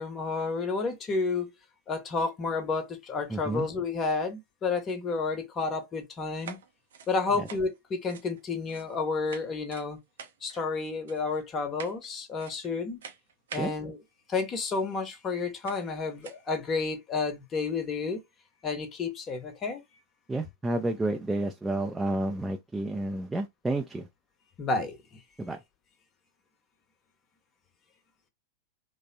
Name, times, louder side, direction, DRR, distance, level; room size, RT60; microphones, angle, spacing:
voice 1, 0.0-1.5 1.9-6.6 7.1-10.0 10.4-13.0 13.5-14.0 14.3-18.2 18.6-19.8 24.6-25.0, left 4 dB, 25° left, 0.9 m, -31 dB
voice 2, 3.3-3.7 7.3-7.5 13.6-13.7 20.3-24.1 25.4-25.6, right 2 dB, 10° right, 0.4 m, -30 dB
sound 1, 6.3-9.0 9.2-9.9 10.2-10.6 11.1-11.4 11.8-12.1 12.4-12.7 13.0-13.7 14.9-15.0 15.6-15.9 16.2-16.5, right 6 dB, 65° right, 0.5 m, -46 dB
3.3 x 2.0 x 2.7 m
figure-of-eight pair, 90°, 0 cm